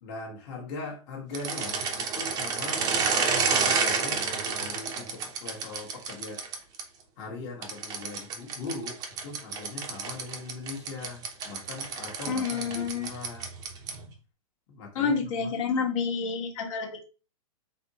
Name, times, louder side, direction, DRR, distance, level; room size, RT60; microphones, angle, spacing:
voice 1, 0.0-2.9 3.5-6.4 7.2-13.5 14.7-15.5, left 3 dB, 35° left, -1 dB, 1.2 m, -40 dB
sound 1, 1.3-6.8 7.6-14.1, right 5 dB, 20° right, 0.6 m, -30 dB
voice 2, 12.3-13.1 14.9-17.0, left 5 dB, 60° left, 1 dB, 1.3 m, -29 dB
4.1 x 3.8 x 2.8 m, 0.34 s
hypercardioid pair, 150°, 19 cm